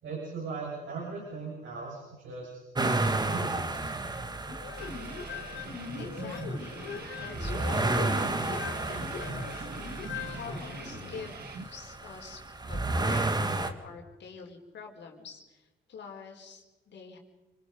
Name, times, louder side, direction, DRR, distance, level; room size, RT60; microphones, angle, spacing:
voice 1, 0.0-2.6 2.9-3.9, right 4 dB, 70° right, -4 dB, 7.3 m, -39 dB
sound 1, 2.7-13.7, right 2 dB, 20° right, 1.8 m, -32 dB
sound 2, 4.5-11.3, left 7 dB, 80° left, 3.3 m, -41 dB
sound 3, 4.8-11.7, right 2 dB, 50° right, 2.4 m, -42 dB
voice 2, 6.0-6.9 7.2-10.0 10.2-12.4 12.7-17.2, left 5 dB, 60° left, 1 dB, 4.4 m, -46 dB
29.0 x 21.5 x 5.3 m, 1.1 s
cardioid pair, 90°, 20 cm